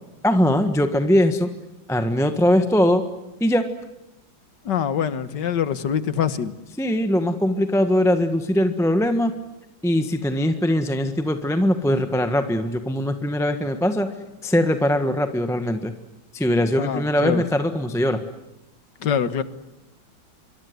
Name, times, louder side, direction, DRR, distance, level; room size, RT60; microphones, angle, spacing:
voice 1, 0.2-1.5 1.9-3.0 3.4-3.7 6.8-9.3 9.8-14.1 14.4-15.9 16.3-18.2, left 1 dB, ahead, 7 dB, 1.1 m, -21 dB
voice 2, 4.7-6.5 16.8-17.4 19.0-19.4, left 8 dB, 65° left, 13 dB, 1.9 m, -24 dB
26.0 x 23.5 x 9.6 m, 0.92 s
omnidirectional pair, 2.1 m